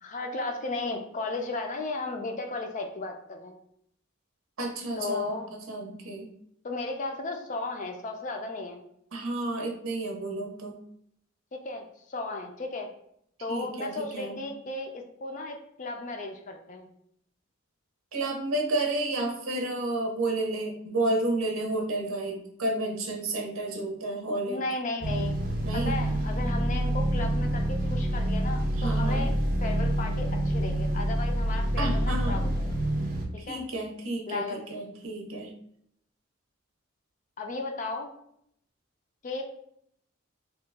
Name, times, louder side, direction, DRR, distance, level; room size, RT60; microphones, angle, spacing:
voice 1, 0.0-3.6 5.0-5.5 6.6-8.8 11.5-12.9 13.4-16.9 24.5-25.4 25.7-29.3 29.6-32.8 33.5-33.6 34.3-34.6 37.4-38.1 39.2-39.4, left 3 dB, 40° left, 4 dB, 0.3 m, -35 dB
voice 2, 4.6-6.3 9.1-10.8 13.5-14.4 18.1-24.6 25.6-26.0 28.8-29.3 31.8-32.4 33.4-35.5, right 2 dB, 90° right, 1 dB, 0.7 m, -31 dB
sound 1, 25.0-33.3, right 1 dB, 40° right, 0.5 m, -27 dB
2.8 x 2.2 x 3.4 m, 0.71 s
head